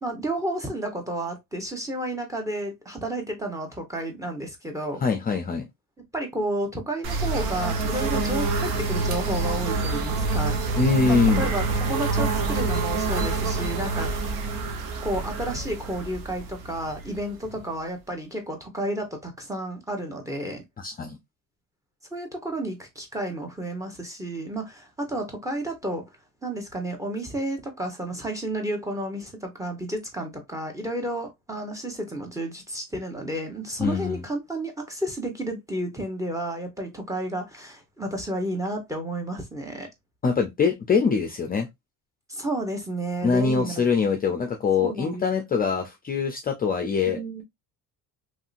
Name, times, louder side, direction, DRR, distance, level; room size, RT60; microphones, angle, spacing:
voice 1, 0.0-5.0 6.1-14.1 15.0-20.6 22.1-26.0 26.4-39.9 42.3-43.9 44.8-45.2 47.0-47.4, right 1 dB, 10° right, 1.0 m, -31 dB
voice 2, 5.0-5.7 10.7-11.4 20.8-21.2 33.8-34.2 40.2-41.7 43.2-47.2, left 5 dB, 25° left, 0.5 m, -23 dB
sound 1, 7.0-17.7, right 3 dB, 85° right, 0.9 m, -27 dB
3.1 x 2.7 x 2.5 m
cardioid pair, 110°, 37 cm